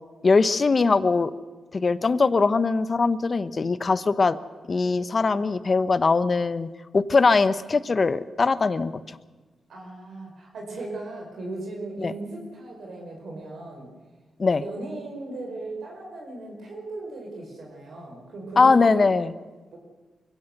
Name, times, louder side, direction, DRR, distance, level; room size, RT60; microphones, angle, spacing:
voice 1, 0.2-1.3 1.7-4.4 4.7-6.7 6.9-9.0 12.0-12.1 14.4-14.6 18.6-19.3, left 4 dB, 45° left, 14 dB, 1.0 m, -21 dB
voice 2, 9.7-13.9 14.6-19.1 19.7-19.8, right 2 dB, 70° right, 0 dB, 5.3 m, -37 dB
23.5 x 16.5 x 6.8 m, 1.3 s
supercardioid pair, 50°, 0 cm